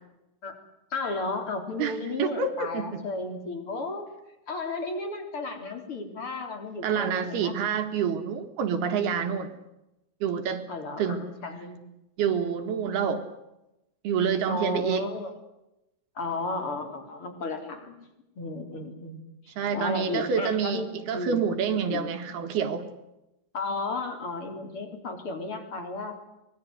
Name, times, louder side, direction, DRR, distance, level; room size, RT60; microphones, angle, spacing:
voice 1, 0.9-4.1 4.5-7.6 10.7-11.8 14.5-15.3 16.2-18.0 18.4-21.5 21.8-22.1 23.5-26.2, left 2 dB, 30° left, 6 dB, 4.0 m, -34 dB
voice 2, 1.8-3.1 6.8-9.5 10.2-10.7 11.0-11.3 12.2-13.3 14.0-15.1 19.6-22.9, right 7 dB, 60° right, 7 dB, 3.3 m, -28 dB
25.0 x 22.0 x 8.0 m, 0.91 s
omnidirectional pair, 5.5 m